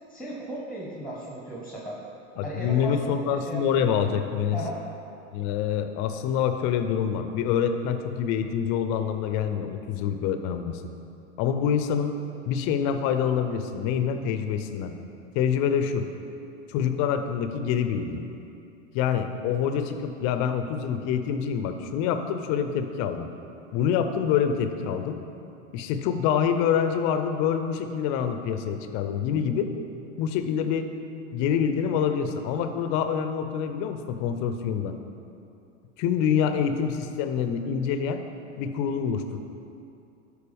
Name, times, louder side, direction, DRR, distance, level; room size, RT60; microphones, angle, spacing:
voice 1, 0.1-2.0 2.4-3.9 4.5-4.7, right 1 dB, ahead, -4 dB, 1.3 m, -36 dB
voice 2, 2.4-4.6 5.3-10.8 11.4-12.1 12.5-14.9 15.3-16.1 16.7-18.2 18.9-23.3 23.7-25.2 25.7-29.7 30.2-30.9 31.3-35.0 36.0-38.2 38.6-39.4, left 8 dB, 45° left, 8 dB, 0.7 m, -26 dB
11.5 x 4.7 x 3.5 m, 2.7 s
hypercardioid pair, 90°, 38 cm